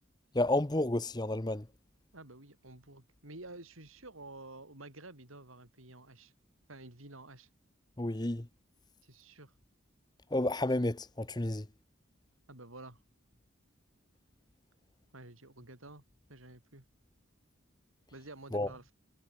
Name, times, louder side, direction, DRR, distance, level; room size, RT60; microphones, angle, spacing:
voice 1, 0.3-1.7 8.0-8.5 10.3-11.7 18.5-18.7, left 1 dB, 20° left, 0.9 m, -31 dB
voice 2, 2.1-6.3 6.7-7.5 9.0-9.5 12.5-13.0 15.1-16.0 16.3-16.9 18.1-18.9, right 2 dB, 85° right, 5.2 m, -50 dB
head